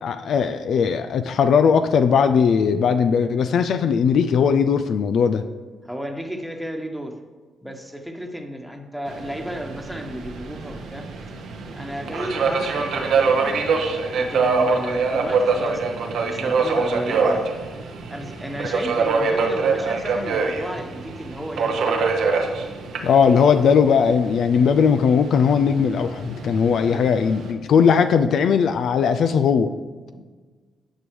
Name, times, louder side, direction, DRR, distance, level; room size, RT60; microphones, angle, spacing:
voice 1, 0.0-5.4 23.0-29.7, left 6 dB, 70° left, 9 dB, 0.3 m, -18 dB
voice 2, 5.8-7.2 7.6-11.1 11.7-13.8 14.2-17.5 18.1-22.0 26.9-27.1, equal, ahead, 3 dB, 1.2 m, -33 dB
Subway metro underground, 9.1-27.5, right 4 dB, 70° right, 0.9 m, -25 dB
10.0 x 5.3 x 3.2 m, 1.4 s
supercardioid pair, 60°, 0 cm